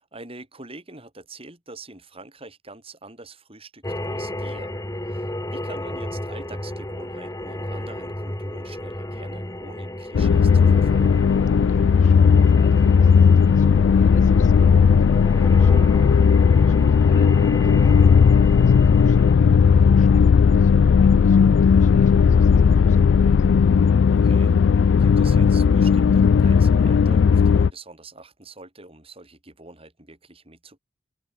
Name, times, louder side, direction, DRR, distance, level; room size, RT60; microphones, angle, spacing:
voice 1, 0.0-4.7 5.0-11.2 21.0-21.1 24.1-24.5 25.0-30.8, right 2 dB, 30° right, 7.7 m, -44 dB
sound 1, 3.8-19.3, left 1 dB, 15° left, 2.3 m, -33 dB
sound 2, 10.1-27.7, left 6 dB, 70° left, 0.3 m, -16 dB
voice 2, 11.5-23.5, left 2 dB, 40° left, 3.3 m, -45 dB
head